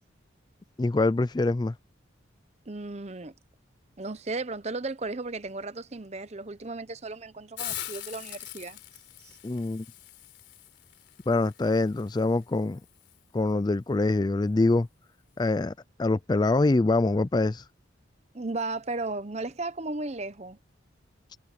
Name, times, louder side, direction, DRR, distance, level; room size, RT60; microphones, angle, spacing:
voice 1, 0.8-1.7 9.4-9.8 11.3-12.8 13.3-14.9 15.4-15.7 16.0-17.6, left 2 dB, 20° left, 0.3 m, -24 dB
voice 2, 2.7-3.3 4.0-8.8 9.2-9.4 18.3-20.6, right 3 dB, 35° right, 0.9 m, -35 dB
Hiss, 7.6-13.2, left 13 dB, 65° left, 4.1 m, -43 dB
head